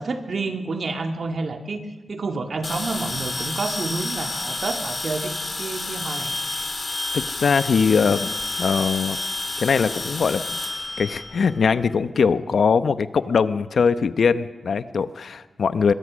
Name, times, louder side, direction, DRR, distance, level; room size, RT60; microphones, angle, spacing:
voice 1, 0.0-5.3 5.6-6.3, right 3 dB, 55° right, 5 dB, 2.2 m, -29 dB
sound 1, 2.6-11.9, left 2 dB, 35° left, 3.0 m, -30 dB
voice 2, 7.1-8.3 8.6-9.2 9.6-10.6 11.0-15.9, left 5 dB, 70° left, 13 dB, 0.9 m, -21 dB
23.0 x 21.5 x 6.3 m, 1.2 s
cardioid pair, 85°, 0 cm